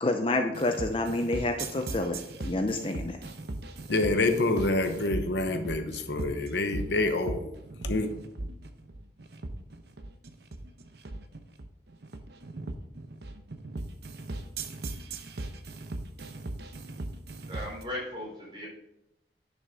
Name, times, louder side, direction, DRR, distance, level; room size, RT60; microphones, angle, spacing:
voice 1, 0.0-3.2, left 2 dB, 30° left, 6 dB, 0.5 m, -28 dB
sound 1, 0.5-17.8, right 2 dB, 70° right, 0.8 m, -38 dB
voice 2, 3.9-7.4 7.8-8.1, left 2 dB, 85° left, 7 dB, 0.9 m, -27 dB
voice 3, 17.5-18.7, left 1 dB, 30° right, -4 dB, 3.5 m, -37 dB
10.5 x 6.1 x 3.6 m, 0.89 s
head